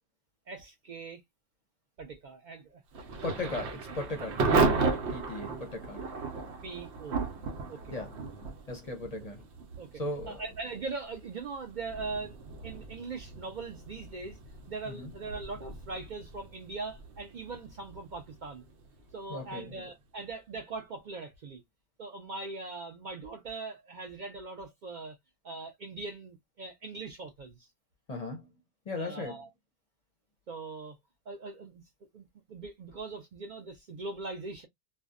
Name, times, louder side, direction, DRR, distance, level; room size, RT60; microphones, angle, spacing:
voice 1, 0.5-1.2 2.0-2.8 3.2-3.5 6.6-7.2 7.7-7.9 9.8-12.4 12.6-14.4 14.7-18.7 19.1-21.6 22.0-25.2 25.4-27.7 28.9-29.5 30.5-31.0 31.3-31.8 32.1-34.7, right 3 dB, 55° right, 0.5 m, -41 dB
Thunder / Rain, 2.9-19.6, right 4 dB, 90° right, 0.9 m, -35 dB
voice 2, 3.2-6.1 7.9-8.1 8.7-9.4 9.9-10.4 14.9-15.1 19.3-19.7 28.1-28.5 28.9-29.4, left 2 dB, 45° left, 0.6 m, -37 dB
2.6 x 2.1 x 2.3 m
omnidirectional pair, 1.1 m